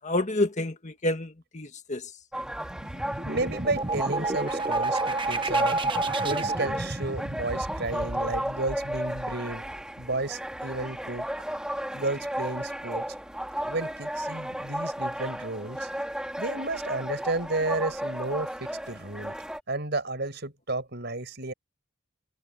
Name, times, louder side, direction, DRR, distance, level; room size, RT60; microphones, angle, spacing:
voice 1, 0.0-2.0, left 1 dB, 35° left, 1.6 m, -28 dB
sound 1, 2.3-19.6, equal, 5° right, 3.4 m, -34 dB
sound 2, 2.4-10.0, right 3 dB, 25° right, 1.1 m, -31 dB
voice 2, 3.2-5.8 6.2-9.6 10.0-11.3 11.9-13.1 13.6-15.9 16.4-19.3 19.7-21.5, right 2 dB, 55° right, 6.6 m, -32 dB
head